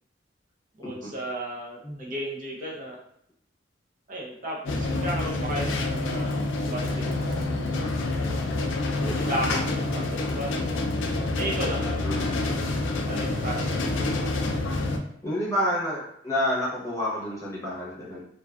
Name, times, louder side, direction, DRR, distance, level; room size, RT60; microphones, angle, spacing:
voice 1, 0.8-3.0 4.1-7.6 9.0-10.8 11.3-12.8 13.1-13.9, right 1 dB, 45° right, -4 dB, 0.6 m, -34 dB
sound 1, 4.7-15.0, left 2 dB, 80° left, 0.4 m, -27 dB
voice 2, 15.2-18.2, left 1 dB, 15° left, -7 dB, 0.8 m, -28 dB
2.5 x 2.3 x 2.3 m, 0.71 s
head